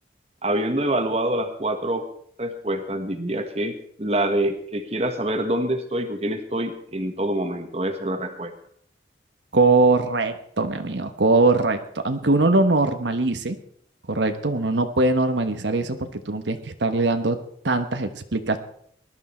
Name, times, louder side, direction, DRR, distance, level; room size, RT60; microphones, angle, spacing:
voice 1, 0.4-2.1 2.4-8.5, right 1 dB, 35° right, 7 dB, 1.4 m, -26 dB
voice 2, 9.5-13.6 14.1-17.4 17.6-18.6, right 3 dB, 80° right, 7 dB, 1.2 m, -21 dB
19.5 x 12.0 x 4.4 m, 0.66 s
head